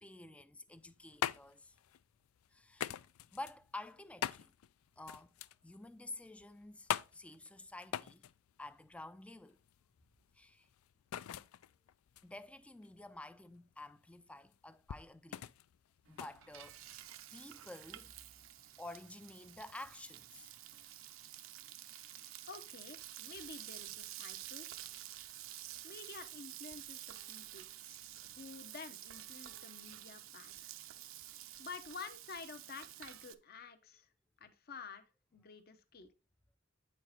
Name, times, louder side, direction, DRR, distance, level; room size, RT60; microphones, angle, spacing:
voice 1, 0.0-1.8 2.5-3.0 3.3-4.5 5.0-5.3 5.6-8.3 8.6-9.6 10.3-10.7 12.2-15.5 16.1-17.0 17.3-18.1 18.8-20.5 27.8-28.0, left 2 dB, 5° left, 0.3 m, -50 dB
sound 1, 0.7-17.3, left 10 dB, 85° left, 0.3 m, -44 dB
Frying (food), 16.1-33.3, right 13 dB, 70° right, 0.6 m, -50 dB
voice 2, 22.5-24.7 25.8-27.7 28.2-30.7 31.6-34.1 34.4-35.0 35.3-36.1, left 5 dB, 50° left, 0.7 m, -50 dB
8.7 x 4.6 x 4.0 m
head